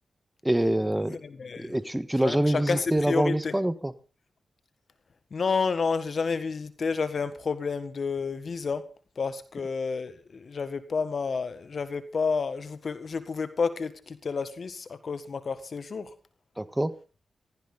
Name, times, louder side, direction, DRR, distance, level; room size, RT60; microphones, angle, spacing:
voice 1, 0.4-1.2 1.6-3.9 16.6-16.9, right 1 dB, 15° right, 13 dB, 1.5 m, -25 dB
voice 2, 1.1-1.7 2.2-3.5 5.3-8.9 9.2-16.1, left 5 dB, 65° left, 12 dB, 1.7 m, -30 dB
17.5 x 15.5 x 4.1 m, 0.36 s
cardioid pair, 45°, 0 cm